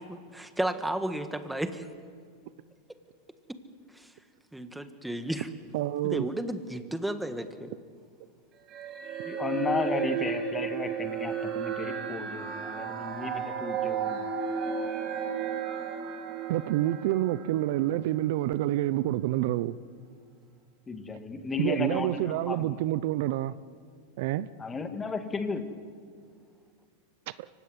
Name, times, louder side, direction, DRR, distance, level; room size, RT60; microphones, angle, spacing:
voice 1, 0.0-1.9 3.9-4.1 4.5-5.5 6.0-7.7, right 1 dB, 5° right, 1.6 m, -33 dB
voice 2, 5.7-6.3 16.5-19.7 21.6-23.5 24.2-24.5 27.4-27.5, right 14 dB, 60° right, 0.7 m, -28 dB
sound 1, 8.7-18.2, right 6 dB, 35° right, 4.9 m, -33 dB
voice 3, 9.3-14.3 20.9-22.7 24.6-25.8, left 4 dB, 15° left, 1.9 m, -34 dB
25.0 x 16.5 x 9.8 m
hypercardioid pair, 125°, 0 cm